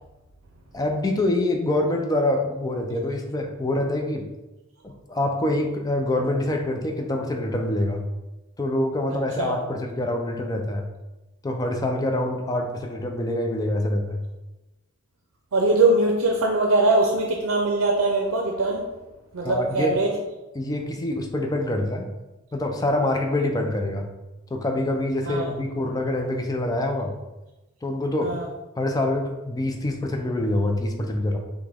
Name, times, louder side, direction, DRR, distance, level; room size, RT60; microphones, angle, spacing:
voice 1, 0.7-4.3 4.8-8.0 8.6-10.9 11.4-14.2 19.4-19.9 20.6-22.1 22.5-24.1 24.5-27.1 27.8-28.3 28.8-31.4, left 1 dB, 20° left, 3 dB, 0.4 m, -25 dB
voice 2, 15.5-18.8 19.3-20.1 25.3-25.5 28.2-28.5, right 2 dB, 85° right, 1 dB, 0.5 m, -21 dB
5.7 x 2.2 x 3.4 m, 1.0 s
head